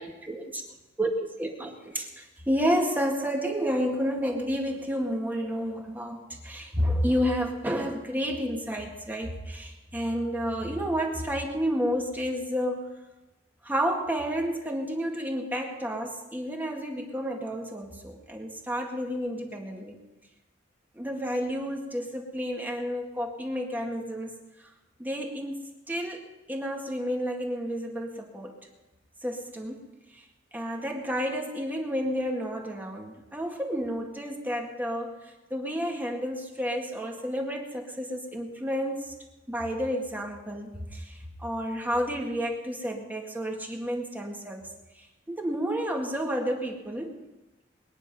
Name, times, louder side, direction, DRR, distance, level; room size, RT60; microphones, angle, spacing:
voice 1, 0.0-0.4 1.0-12.9 13.6-20.0 21.0-24.4 25.0-28.6 29.2-29.8 30.5-35.2 35.5-39.1 39.5-41.1 41.4-44.6 45.3-47.2, equal, 10° right, 1 dB, 2.0 m, -30 dB
22.0 x 9.9 x 5.5 m, 1.0 s
head